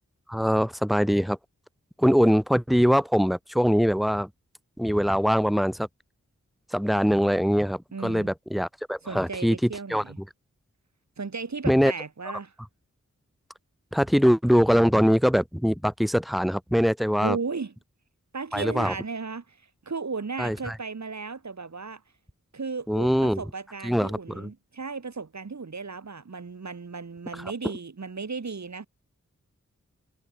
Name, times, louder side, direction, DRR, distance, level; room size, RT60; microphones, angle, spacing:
voice 1, 0.3-1.4 2.0-4.3 4.8-5.9 6.7-10.0 11.6-11.9 13.9-17.4 18.5-18.9 20.4-20.8 22.9-23.4 23.8-24.5 27.3-27.5, equal, ahead, 1.8 m, -23 dB
voice 2, 7.9-8.3 9.0-10.2 11.2-12.5 17.2-17.7 18.3-19.6 19.8-22.0 22.5-28.9, right 4 dB, 70° right, 4.3 m, -35 dB
wide cardioid pair, 70°, 29 cm